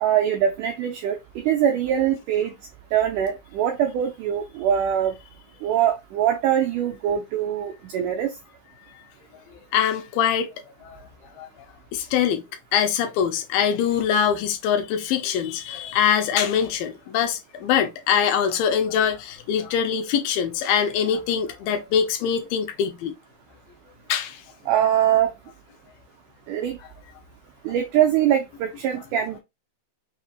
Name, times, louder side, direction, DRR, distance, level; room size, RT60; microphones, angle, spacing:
voice 1, 0.0-2.5 2.9-5.1 5.6-8.3 24.7-25.3 26.5-26.8 27.6-29.4, right 10 dB, 90° right, 1.8 m, -23 dB
voice 2, 9.7-10.5 10.8-11.1 11.4-11.5 11.9-12.4 12.7-23.1 24.1-24.4, left 8 dB, 80° left, 2.2 m, -23 dB
5.9 x 2.7 x 2.4 m
omnidirectional pair, 4.3 m